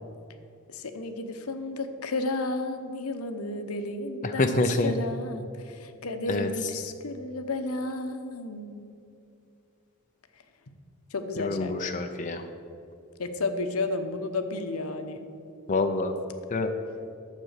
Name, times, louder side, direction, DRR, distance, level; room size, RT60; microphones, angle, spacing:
voice 1, 0.7-8.9 11.1-11.7 13.2-15.2, left 2 dB, 75° left, 8 dB, 0.9 m, -32 dB
voice 2, 4.4-4.9 6.3-6.5 11.4-12.4 15.7-16.1 16.5-16.7, left 2 dB, 35° left, 5 dB, 0.6 m, -26 dB
11.0 x 7.4 x 6.5 m, 2.6 s
head